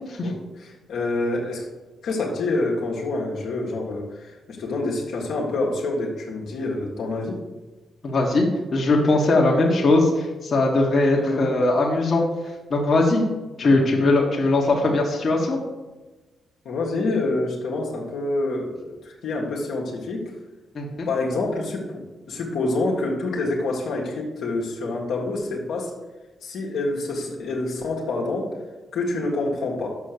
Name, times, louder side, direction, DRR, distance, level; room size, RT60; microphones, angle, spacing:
voice 1, 0.2-1.7 2.0-7.4 11.2-11.5 13.7-13.8 16.7-20.2 21.1-25.9 26.4-28.6 28.9-30.0, left 2 dB, 75° left, -3 dB, 1.8 m, -27 dB
voice 2, 8.0-8.4 8.7-12.2 12.7-13.2 13.6-15.6 20.7-21.1, left 2 dB, 55° left, -1 dB, 1.7 m, -20 dB
7.1 x 5.6 x 6.7 m, 1.2 s
supercardioid pair, 45°, 0 cm